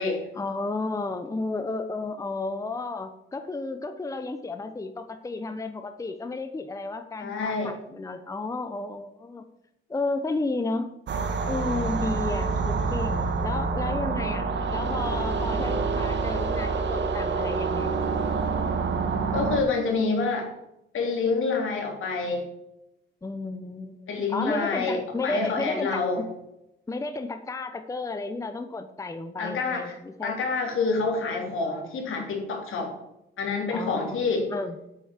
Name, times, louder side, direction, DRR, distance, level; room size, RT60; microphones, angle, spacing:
voice 1, 0.3-9.5 9.9-10.9 11.4-18.0 23.2-26.2 26.9-30.4 33.7-34.2 34.5-34.8, left 3 dB, 15° left, 8 dB, 0.7 m, -32 dB
voice 2, 7.2-7.7 19.3-20.5 20.9-22.4 24.1-26.2 29.4-30.0 30.2-32.9 33.4-34.5, left 4 dB, 75° left, 1 dB, 3.3 m, -27 dB
sound 1, 11.1-19.6, right 4 dB, 60° right, 1.4 m, -27 dB
8.5 x 7.8 x 7.3 m, 0.87 s
wide cardioid pair, 135°, 21 cm